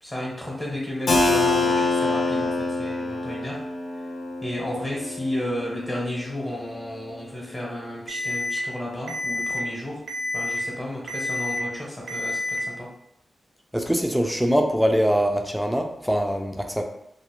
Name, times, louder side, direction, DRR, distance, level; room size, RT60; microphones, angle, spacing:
voice 1, 0.0-3.6 4.4-10.0 10.3-12.9, left 1 dB, 25° left, -4 dB, 0.8 m, -33 dB
Keyboard (musical), 1.1-6.6, left 3 dB, 70° left, 0.4 m, -26 dB
Alarm, 8.1-8.6 9.1-9.6 10.1-10.6 11.1-11.6 12.1-12.6, left 2 dB, 75° right, 0.5 m, -29 dB
voice 2, 13.7-16.8, equal, ahead, 3 dB, 0.3 m, -23 dB
2.4 x 2.0 x 2.9 m, 0.79 s
wide cardioid pair, 100°, 0 cm